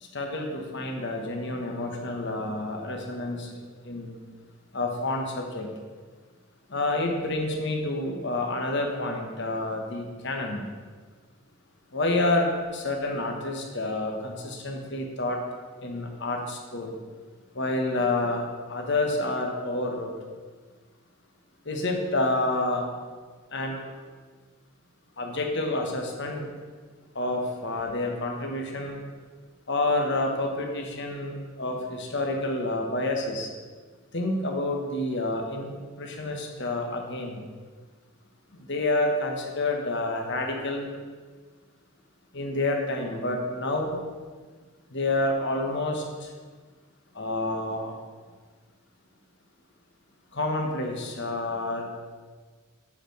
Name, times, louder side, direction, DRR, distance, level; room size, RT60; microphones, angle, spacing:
voice 1, 0.0-4.2 4.7-5.7 6.7-10.6 11.9-15.4 15.8-16.9 17.5-20.1 21.6-22.9 23.5-24.1 25.2-26.5 27.1-29.0 29.7-33.5 34.1-37.4 38.5-40.9 42.3-44.0 44.9-46.3 47.1-47.9 50.3-51.8, left 2 dB, 55° left, 2 dB, 1.3 m, -29 dB
8.7 x 4.6 x 6.5 m, 1.5 s
head